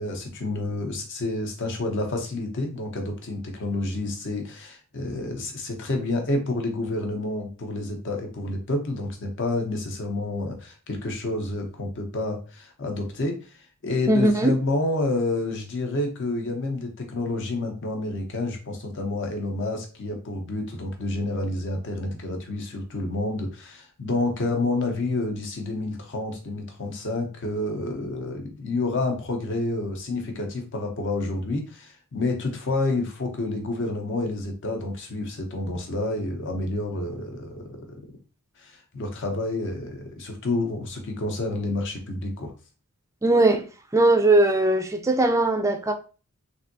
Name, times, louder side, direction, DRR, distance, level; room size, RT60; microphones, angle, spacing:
voice 1, 0.0-13.4 13.8-37.9 38.6-42.5, left 2 dB, 55° left, 0.7 m, -29 dB
voice 2, 14.1-14.6 43.2-43.6 43.9-45.9, right 2 dB, 15° right, 0.3 m, -19 dB
3.4 x 2.6 x 2.6 m
head